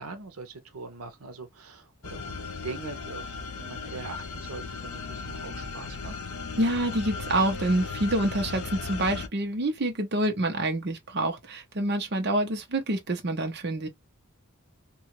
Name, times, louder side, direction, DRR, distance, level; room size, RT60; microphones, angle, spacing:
voice 1, 0.0-6.2, right 4 dB, 85° right, 0.7 m, -42 dB
sound 1, 2.0-9.3, left 4 dB, 85° left, 0.5 m, -36 dB
voice 2, 6.6-13.9, right 1 dB, 50° right, 0.7 m, -27 dB
2.8 x 2.4 x 3.0 m
head